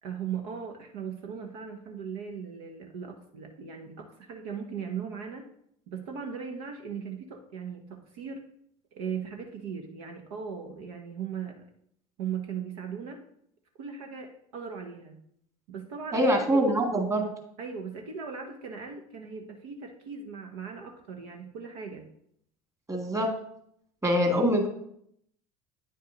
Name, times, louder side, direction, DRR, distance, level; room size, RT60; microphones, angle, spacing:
voice 1, 0.0-5.5 5.9-8.4 8.9-11.6 12.2-13.2 13.8-15.2 15.7-16.6 17.6-22.1, right 6 dB, 65° right, 4 dB, 1.2 m, -38 dB
voice 2, 16.1-17.3 22.9-23.4 24.0-24.7, equal, 15° right, 3 dB, 2.1 m, -24 dB
9.5 x 6.6 x 3.9 m, 0.71 s
figure-of-eight pair, 70°, 20 cm